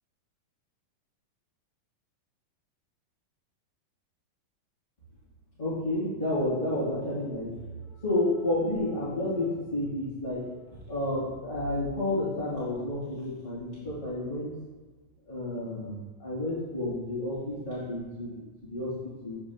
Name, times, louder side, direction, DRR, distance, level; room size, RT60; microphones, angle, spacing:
voice 1, 5.6-7.6 7.8-10.6 10.9-14.5 15.3-19.4, left 1 dB, 25° left, -10 dB, 1.2 m, -31 dB
7.4 x 6.9 x 2.4 m, 1.3 s
omnidirectional pair, 3.9 m